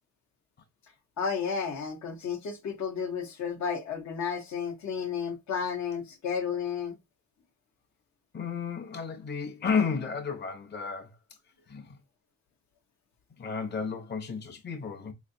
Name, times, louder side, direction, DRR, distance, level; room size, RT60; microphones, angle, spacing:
voice 1, 1.2-7.0, left 6 dB, 65° left, 0.9 m, -32 dB
voice 2, 8.3-11.1 11.7-12.0 13.4-15.1, left 5 dB, 35° left, 0.8 m, -32 dB
3.8 x 3.2 x 2.6 m
cardioid pair, 90°, 30 cm